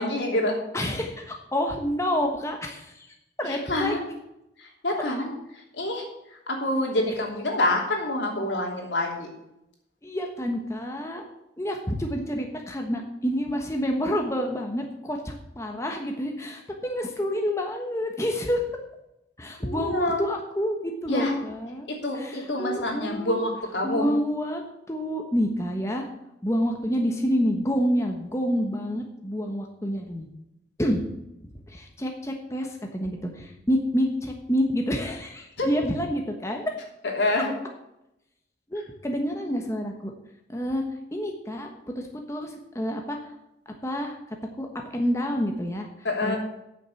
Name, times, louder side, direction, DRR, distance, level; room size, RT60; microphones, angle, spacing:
voice 1, 0.0-0.6 3.4-4.0 4.6-5.3 5.7-6.0 6.5-9.3 19.6-20.2 21.1-21.3 21.9-24.1 35.6-35.7 37.0-37.5 46.0-46.4, left 1 dB, 85° left, 0 dB, 3.0 m, -26 dB
voice 2, 0.7-3.1 3.4-3.9 10.0-11.2 11.6-18.6 19.4-21.9 22.1-23.4 23.8-24.6 24.9-26.1 26.4-30.3 30.8-31.0 31.7-36.7 38.7-40.1 40.5-40.8 41.1-41.7 41.9-43.2 43.7-44.2 44.6-45.9 46.2-46.4, equal, 15° left, 2 dB, 1.1 m, -28 dB
9.2 x 7.2 x 7.1 m, 0.86 s
head